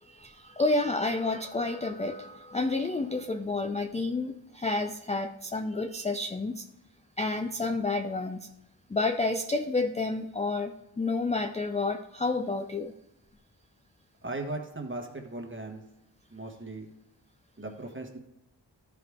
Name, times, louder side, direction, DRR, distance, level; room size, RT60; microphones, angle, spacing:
voice 1, 0.0-6.7 7.2-8.5 8.9-12.9, left 3 dB, 15° left, 7 dB, 0.4 m, -30 dB
voice 2, 14.2-15.8 16.3-16.9 17.6-18.2, right 2 dB, 25° right, 3 dB, 1.4 m, -37 dB
12.5 x 4.8 x 3.6 m, 0.89 s
wide cardioid pair, 70°, 46 cm